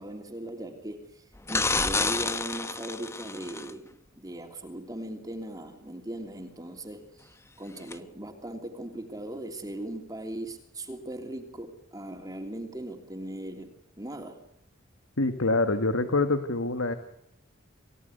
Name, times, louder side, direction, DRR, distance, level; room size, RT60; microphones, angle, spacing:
voice 1, 0.0-7.3 7.6-14.4, right 1 dB, 20° right, 5 dB, 3.2 m, -39 dB
sound 1, 1.5-3.7 7.9-8.0, left 3 dB, 15° left, 0.9 m, -29 dB
voice 2, 15.2-16.9, left 2 dB, 85° left, 9 dB, 2.0 m, -25 dB
29.0 x 17.5 x 8.2 m, 0.77 s
head